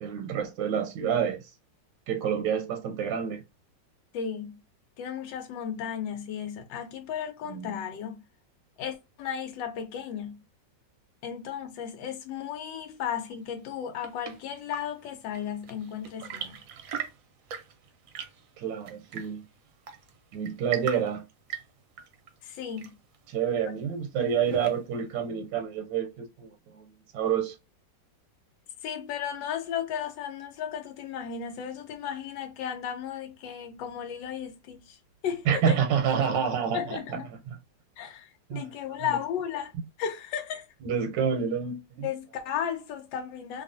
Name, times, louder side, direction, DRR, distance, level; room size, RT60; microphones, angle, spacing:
voice 1, 0.0-1.4 2.1-3.4 7.4-7.7 18.6-19.4 20.3-21.2 23.3-27.6 35.5-37.6 38.5-38.7 39.0-39.2 40.8-42.1, right 7 dB, 90° right, 1.3 m, -28 dB
voice 2, 4.1-4.6 5.0-8.2 8.8-10.4 11.2-16.6 22.4-22.9 28.8-35.0 35.2-35.8 36.7-37.3 38.0-39.7 40.0-40.6 42.0-43.6, left 8 dB, 90° left, 1.3 m, -34 dB
Chirp tweet / Engine / Tap, 13.6-25.1, right 9 dB, 65° right, 0.9 m, -42 dB
2.9 x 2.4 x 2.5 m
omnidirectional pair, 1.9 m